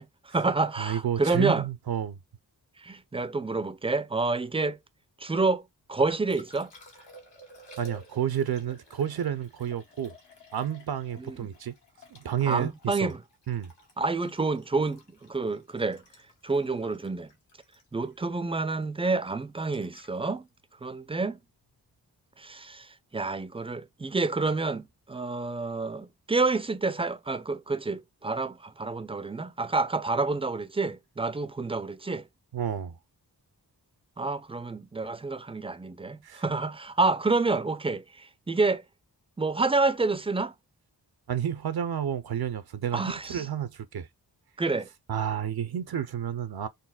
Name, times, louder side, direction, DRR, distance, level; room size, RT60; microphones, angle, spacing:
voice 1, 0.0-1.6 2.8-4.8 5.2-5.6 5.9-6.7 11.2-11.5 12.5-13.2 14.0-16.0 16.4-17.3 17.9-20.5 20.8-21.4 22.4-32.2 34.2-38.8 39.4-40.5 42.9-43.5 44.6-44.9, right 3 dB, 15° right, 0.4 m, -28 dB
voice 2, 0.8-2.2 7.8-10.1 10.5-11.7 12.1-13.1 13.5-13.7 32.5-33.0 36.2-36.4 41.3-44.1 45.1-46.7, right 9 dB, 65° right, 0.5 m, -30 dB
Liquid, 5.9-22.0 24.8-24.9, right 1 dB, 80° left, 1.1 m, -54 dB
4.0 x 2.1 x 2.3 m
cardioid pair, 40°, 42 cm